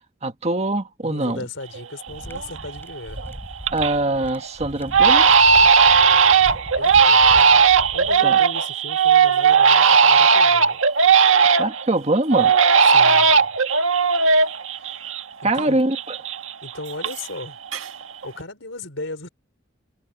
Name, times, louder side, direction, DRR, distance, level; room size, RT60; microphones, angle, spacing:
voice 1, 0.2-1.5 3.7-5.4 8.2-8.4 11.6-12.6 15.4-16.2, right 2 dB, 35° right, 1.6 m, -23 dB
voice 2, 1.0-3.2 5.9-10.8 12.8-13.6 14.7-15.1 15.4-15.8 16.6-17.6 18.2-19.3, left 2 dB, 70° left, 5.0 m, -37 dB
Crying sobbing, 1.7-1.8 2.3-2.8 3.2-4.0 4.3-4.5 4.9-11.8 12.3-15.6 15.9-17.4 17.7-18.2, right 5 dB, 85° right, 1.6 m, -16 dB
sound 1, 2.1-8.2, equal, 10° left, 3.9 m, -38 dB
head